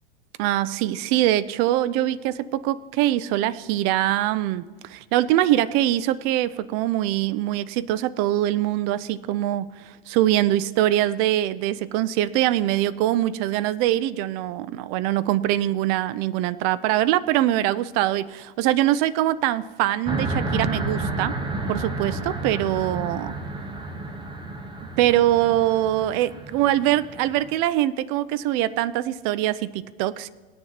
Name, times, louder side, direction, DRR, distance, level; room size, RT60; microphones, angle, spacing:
voice 1, 0.4-21.3 21.7-22.2 22.4-23.4 25.0-30.3, right 13 dB, 30° right, 16 dB, 0.4 m, -23 dB
sound 1, 20.0-27.5, right 2 dB, 15° right, 1.1 m, -31 dB
18.5 x 9.6 x 2.9 m, 1.4 s
figure-of-eight pair, 100°, 30 cm